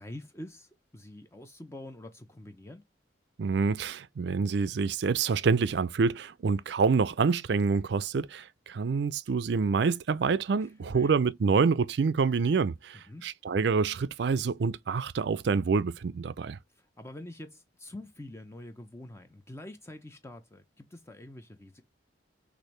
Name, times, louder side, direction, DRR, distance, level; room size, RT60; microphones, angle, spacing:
voice 1, 0.0-2.9 10.6-11.1 12.9-13.3 16.7-21.8, left 1 dB, 15° left, 0.6 m, -46 dB
voice 2, 3.4-16.6, right 5 dB, 60° right, 0.4 m, -27 dB
6.4 x 2.6 x 3.1 m
head